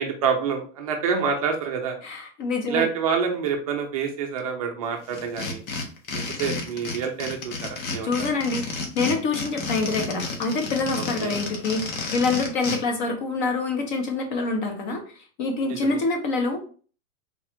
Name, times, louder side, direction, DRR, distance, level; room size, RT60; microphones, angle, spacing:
voice 1, 0.0-2.0 2.7-5.6 6.1-8.3 11.0-11.3 15.6-16.0, right 6 dB, 30° right, 3 dB, 0.5 m, -27 dB
voice 2, 2.0-2.9 8.0-15.0 15.4-16.6, left 3 dB, 35° left, 4 dB, 0.8 m, -26 dB
sound 1, 5.1-12.8, left 4 dB, 85° left, 1.3 m, -31 dB
4.1 x 2.4 x 4.2 m, 0.40 s
supercardioid pair, 175°, 40 cm